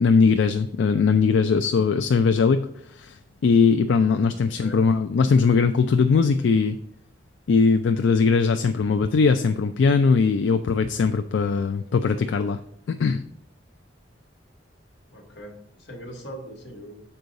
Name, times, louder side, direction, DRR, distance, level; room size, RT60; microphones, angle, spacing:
voice 1, 0.0-2.6 2.9-6.8 7.5-12.6 12.9-13.2, left 5 dB, 80° left, 8 dB, 0.4 m, -20 dB
voice 2, 4.4-4.8 6.4-6.5 15.1-17.0, equal, 65° left, 1 dB, 1.5 m, -41 dB
6.6 x 4.6 x 3.9 m, 0.70 s
head